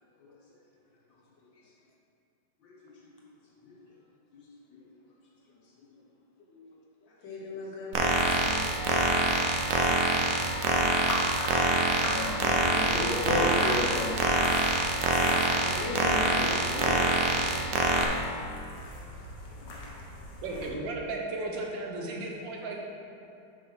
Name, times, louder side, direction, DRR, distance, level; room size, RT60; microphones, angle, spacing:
voice 1, 1.1-1.7 2.6-4.0 4.3-4.9 5.6-5.9 7.1-11.4 15.3-18.1 18.3-18.9 19.5-19.8, left 2 dB, 75° left, -4 dB, 1.8 m, -43 dB
sound 1, 7.9-18.1, right 3 dB, 60° right, 1.0 m, -25 dB
sound 2, 8.0-20.7, left 1 dB, 55° left, 1.4 m, -39 dB
sound 3, 8.4-18.2, equal, 20° right, 1.5 m, -44 dB
voice 2, 12.0-14.1, left 2 dB, 40° left, -2 dB, 1.1 m, -31 dB
voice 3, 20.4-22.8, right 2 dB, 75° right, -1 dB, 1.8 m, -35 dB
6.7 x 5.1 x 5.8 m, 2.7 s
omnidirectional pair, 2.1 m